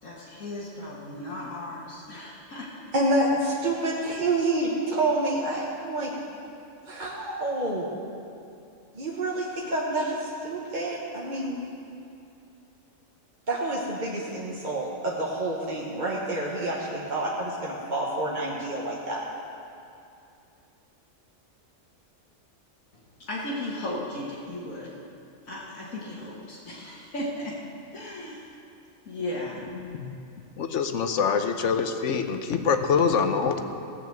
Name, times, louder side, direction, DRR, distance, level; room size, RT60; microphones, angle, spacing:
voice 1, 0.0-2.7 23.2-24.9 25.5-27.5 27.9-28.4 29.1-29.7, left 1 dB, 80° left, -7 dB, 1.9 m, -35 dB
voice 2, 2.9-6.1 6.8-7.9 8.9-11.6 13.5-19.3, right 2 dB, 35° right, -4 dB, 1.3 m, -28 dB
voice 3, 29.8-30.1 30.6-33.6, left 6 dB, 65° left, 7 dB, 1.1 m, -25 dB
17.5 x 5.8 x 7.7 m, 2.6 s
omnidirectional pair, 1.4 m